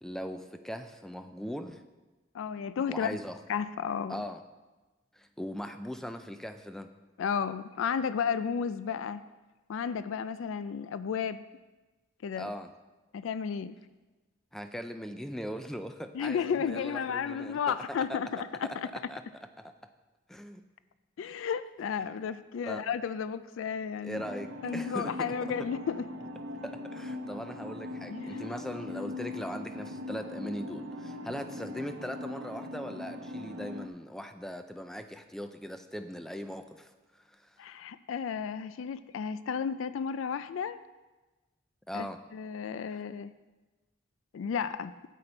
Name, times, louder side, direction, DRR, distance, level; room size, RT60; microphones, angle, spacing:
voice 1, 0.0-1.8 2.9-3.4 4.1-4.4 5.1-6.9 12.4-12.7 14.5-17.8 18.1-18.2 18.8-19.2 19.6-19.7 20.3-20.6 22.7-22.8 24.0-25.3 26.6-37.6 41.9-42.2, equal, ahead, 8 dB, 0.4 m, -40 dB
voice 2, 2.3-3.2 3.5-4.2 7.2-9.2 9.7-11.4 12.2-12.5 13.1-13.7 16.1-18.9 21.2-24.2 24.6-26.0 28.1-28.5 37.6-40.8 41.9-42.1 42.3-43.3 44.3-44.9, left 7 dB, 85° left, 14 dB, 0.3 m, -33 dB
sound 1, 24.1-33.9, left 1 dB, 75° right, 0.7 m, -40 dB
9.6 x 8.3 x 4.4 m, 1.2 s
head